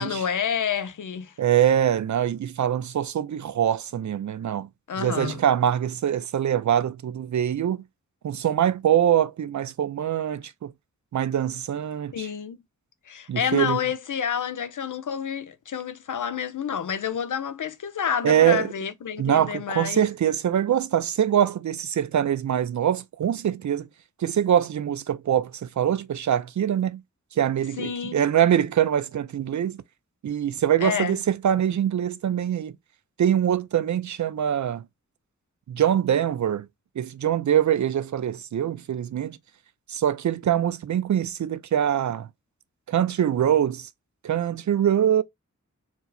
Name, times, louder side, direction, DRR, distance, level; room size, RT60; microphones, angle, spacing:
voice 1, 0.0-1.3 4.9-5.4 12.1-12.6 13.1-20.0 27.8-28.2 30.8-31.2, left 8 dB, 70° left, 0.6 m, -29 dB
voice 2, 1.4-4.7 5.0-7.8 8.2-10.7 11.1-12.3 13.3-13.8 18.2-18.7 19.2-23.9 24.2-27.0 27.4-29.8 30.2-32.7 33.2-34.8 35.7-36.7 37.0-39.4 39.9-42.3 42.9-43.9 44.2-45.2, right 10 dB, 65° right, 0.4 m, -23 dB
4.5 x 2.0 x 3.9 m
cardioid pair, 45°, 32 cm